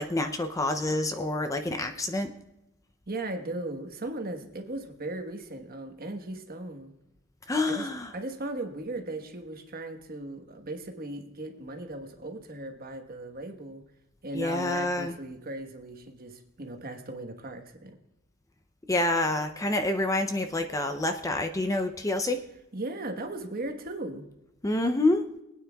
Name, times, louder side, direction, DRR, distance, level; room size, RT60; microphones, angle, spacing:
voice 1, 0.0-2.3 7.5-8.1 14.3-15.1 18.9-22.4 24.6-25.3, left 2 dB, 15° left, 7 dB, 0.5 m, -27 dB
voice 2, 3.1-6.9 7.7-13.8 14.2-18.0 22.7-24.3, right 2 dB, 45° right, 5 dB, 1.2 m, -37 dB
22.5 x 9.2 x 2.3 m, 0.90 s
head